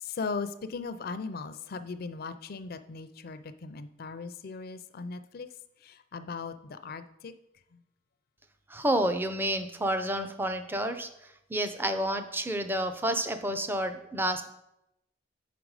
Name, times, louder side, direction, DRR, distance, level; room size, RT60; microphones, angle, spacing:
voice 1, 0.0-5.5 5.8-7.3, left 4 dB, 55° left, 11 dB, 0.5 m, -38 dB
voice 2, 8.7-14.5, right 1 dB, 10° right, 8 dB, 0.5 m, -30 dB
6.7 x 5.1 x 4.8 m, 0.84 s
head